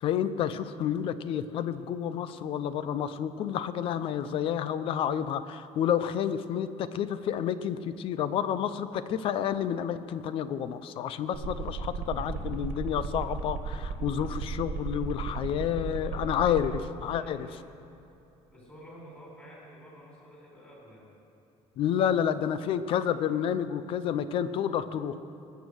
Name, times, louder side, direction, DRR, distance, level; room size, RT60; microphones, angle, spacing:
voice 1, 0.0-17.5 21.8-25.2, left 9 dB, 45° left, 13 dB, 0.5 m, -30 dB
sound 1, 11.3-16.8, right 5 dB, 80° right, 1.7 m, -34 dB
voice 2, 12.1-12.7 13.1-13.3 15.8-17.6 18.4-21.2, equal, 15° left, -4 dB, 3.9 m, -51 dB
21.5 x 7.2 x 6.3 m, 2.9 s
cardioid pair, 175°, 12 cm